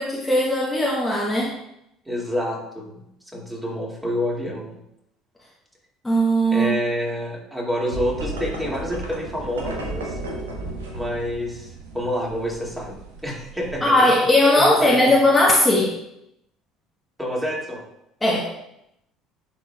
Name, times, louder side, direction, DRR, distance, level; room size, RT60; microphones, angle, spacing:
voice 1, 0.0-1.5 6.0-6.7 13.8-16.0 18.2-18.5, left 1 dB, 15° left, -4 dB, 1.2 m, -18 dB
voice 2, 2.1-3.1 3.3-4.8 6.5-10.2 10.9-12.9 13.2-14.1 14.6-15.2 17.2-17.8, equal, 10° right, -3 dB, 2.3 m, -27 dB
sound 1, 7.9-13.8, right 2 dB, 90° right, 1.0 m, -34 dB
9.9 x 4.3 x 2.3 m, 0.81 s
hypercardioid pair, 65°, 0 cm